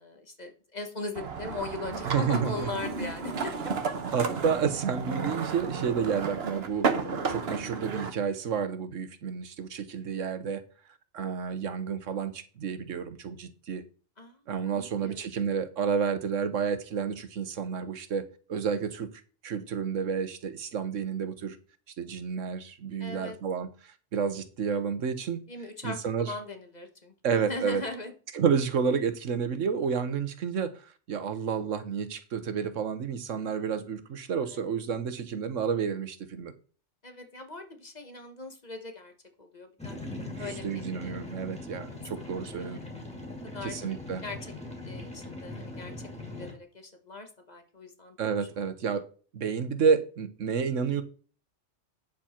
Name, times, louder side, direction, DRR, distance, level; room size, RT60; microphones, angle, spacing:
voice 1, 0.0-3.9 14.2-14.4 14.7-15.3 23.0-23.4 25.5-28.1 34.5-34.6 37.0-39.1 39.4-39.9 40.4-41.4 42.2-42.9 43.5-43.8 44.2-44.4 44.8-45.9 46.3-48.2, left 2 dB, 35° left, 5 dB, 1.5 m, -40 dB
sound 1, 1.1-8.1, right 5 dB, 55° right, 1.3 m, -32 dB
voice 2, 2.0-2.7 4.1-6.9 7.3-10.6 11.1-13.8 14.5-19.1 19.4-21.6 22.0-25.4 25.8-26.3 27.2-27.8 28.3-30.8 31.1-36.5 40.3-42.8 43.6-44.2 48.2-49.0 49.3-51.0, right 6 dB, 85° right, 11 dB, 1.4 m, -30 dB
sound 2, 39.8-46.5, left 2 dB, 5° left, 2.4 m, -41 dB
9.2 x 7.2 x 4.4 m, 0.38 s
omnidirectional pair, 1.3 m